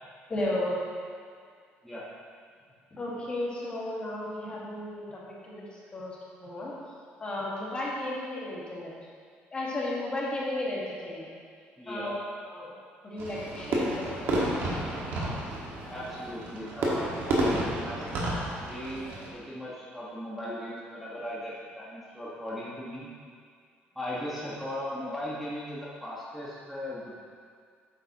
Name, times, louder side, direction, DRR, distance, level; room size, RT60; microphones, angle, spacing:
voice 1, 0.3-0.8 2.9-6.7 7.2-8.9 9.5-11.3 11.9-12.1 12.4-12.7 13.0-14.6, left 1 dB, 25° left, -5 dB, 1.7 m, -34 dB
voice 2, 11.8-12.1 15.9-18.2 18.6-23.1 23.9-27.1, left 1 dB, ahead, -9 dB, 1.4 m, -38 dB
Fireworks, 13.2-19.3, right 1 dB, 65° right, 1.8 m, -31 dB
8.8 x 7.2 x 3.0 m, 2.1 s
cardioid pair, 120°, 4 cm